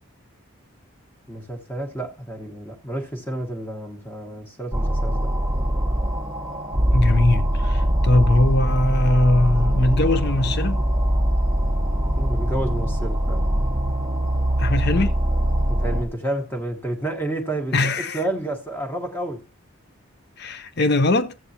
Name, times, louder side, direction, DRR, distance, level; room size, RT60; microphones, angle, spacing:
voice 1, 1.3-5.3 12.1-13.5 15.7-19.4, right 1 dB, 10° left, 1.2 m, -30 dB
sound 1, 4.7-16.0, right 1 dB, 15° right, 1.1 m, -22 dB
voice 2, 6.9-10.8 14.6-15.2 17.7-18.2 20.4-21.4, left 2 dB, 45° left, 0.7 m, -21 dB
14.0 x 8.3 x 2.8 m
head